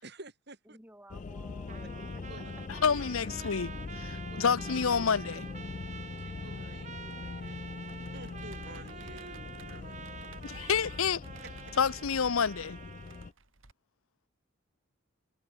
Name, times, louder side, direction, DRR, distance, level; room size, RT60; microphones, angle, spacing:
voice 1, 0.0-0.8 2.3-2.5 2.9-3.5 4.3-4.5 4.9-5.2 6.2-10.0 10.4-10.5 11.4-11.5, right 2 dB, 50° right, 4.1 m, -51 dB
voice 2, 0.6-2.3 2.6-2.7 4.3-5.7, right 1 dB, 10° right, 6.4 m, -55 dB
sound 1, 1.1-13.3, left 4 dB, 35° left, 0.3 m, -42 dB
Trumpet, 1.7-13.3, right 6 dB, 35° right, 1.6 m, -47 dB
voice 3, 2.8-5.4 10.4-11.2 11.8-12.8, left 6 dB, 85° left, 0.8 m, -28 dB
Computer keyboard, 7.0-13.7, right 3 dB, 70° right, 2.9 m, -57 dB
head